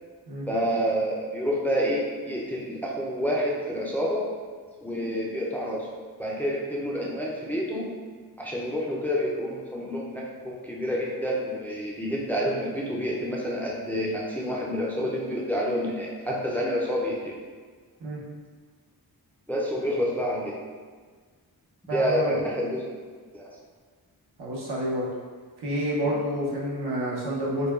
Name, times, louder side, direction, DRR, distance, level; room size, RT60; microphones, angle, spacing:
voice 1, 0.5-4.2 4.8-5.9 6.2-7.9 8.4-17.4 19.5-20.6 21.8-22.9 23.3-23.5, equal, 5° left, -4 dB, 0.4 m, -28 dB
voice 2, 21.9-22.3 24.4-25.1 25.6-27.7, equal, 80° right, -5 dB, 1.0 m, -29 dB
6.5 x 2.2 x 2.3 m, 1.6 s
wide cardioid pair, 140°, 39 cm